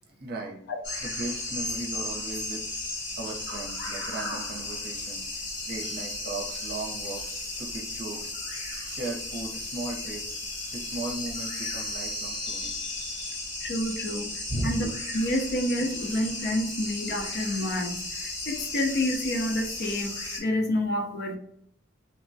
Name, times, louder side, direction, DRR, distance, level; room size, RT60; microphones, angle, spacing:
voice 1, 0.1-0.6 1.0-2.6 3.2-8.3 8.8-10.2 10.7-12.8 14.5-14.8, right 2 dB, 50° right, 0 dB, 0.7 m, -37 dB
sound 1, 0.8-20.4, left 2 dB, 70° left, 1.2 m, -35 dB
voice 2, 13.6-14.3 14.6-14.9 15.1-21.4, left 1 dB, 55° left, 4 dB, 0.4 m, -28 dB
3.2 x 2.1 x 2.6 m, 0.69 s
head